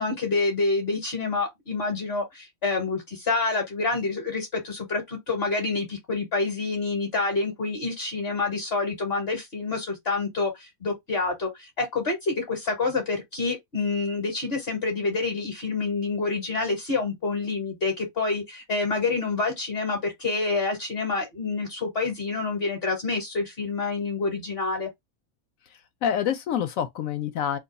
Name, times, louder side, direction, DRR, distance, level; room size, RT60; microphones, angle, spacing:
voice 1, 0.0-24.9, left 3 dB, 50° left, 1.0 m, -27 dB
voice 2, 25.7-27.6, left 9 dB, 75° left, 0.9 m, -27 dB
2.5 x 2.3 x 3.9 m
omnidirectional pair, 1.5 m